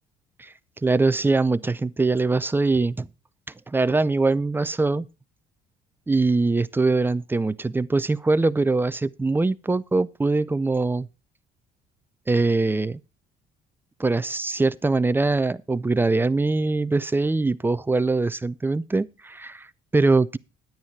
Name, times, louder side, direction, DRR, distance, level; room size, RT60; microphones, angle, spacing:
voice 1, 0.8-3.1 3.7-5.0 6.1-11.1 12.3-13.0 14.0-19.7 19.9-20.4, right 3 dB, 10° right, 0.5 m, -22 dB
10.5 x 9.9 x 4.6 m
cardioid pair, 110°, 17 cm